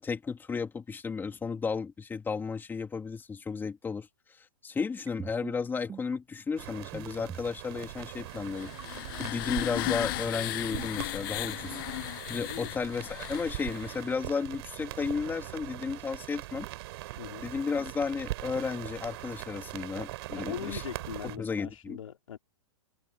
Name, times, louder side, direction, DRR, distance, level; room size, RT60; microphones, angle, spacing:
voice 1, 0.0-4.1 4.4-8.7 9.2-11.8 12.3-16.7 17.4-20.8 21.2-22.0, left 5 dB, 10° left, 3.2 m, -33 dB
sound 1, 5.1-5.5 5.9-6.2 6.9-7.4 7.8-8.0 8.8-9.2 9.6-10.0 10.6-11.0 11.5-11.8, right 8 dB, 15° right, 5.7 m, -42 dB
sound 2, 6.6-21.4, right 18 dB, 50° right, 4.0 m, -41 dB
sound 3, 8.3-14.1, left 22 dB, 40° left, 0.5 m, -36 dB
voice 2, 12.4-12.7 17.2-17.5 20.3-22.4, left 9 dB, 75° left, 3.5 m, -40 dB
hypercardioid pair, 130°, 17 cm